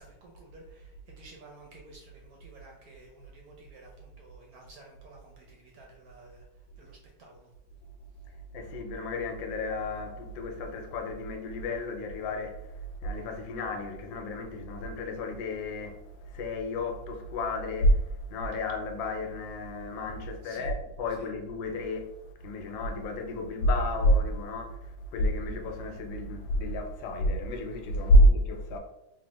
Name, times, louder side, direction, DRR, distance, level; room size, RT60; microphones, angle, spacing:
voice 1, 0.0-6.5 6.8-7.5 20.4-20.7 21.2-21.3, right 2 dB, 70° right, 1.0 m, -53 dB
voice 2, 8.3-28.8, equal, 85° left, 1.3 m, -29 dB
3.2 x 2.2 x 3.0 m
omnidirectional pair, 2.0 m